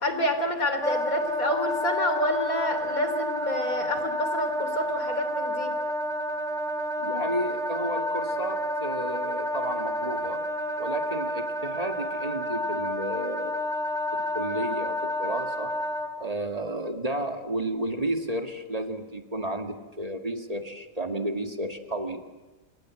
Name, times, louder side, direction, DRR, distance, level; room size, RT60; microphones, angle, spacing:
voice 1, 0.0-5.7, left 1 dB, 75° left, 8 dB, 3.7 m, -28 dB
Wind instrument woodwind instrument, 0.8-16.1, left 1 dB, ahead, 2.1 m, -30 dB
voice 2, 7.0-10.4 10.8-13.6 14.1-15.7 16.2-22.2, right 1 dB, 25° right, 4 dB, 2.1 m, -32 dB
28.5 x 25.5 x 7.7 m, 1.1 s
omnidirectional pair, 1.5 m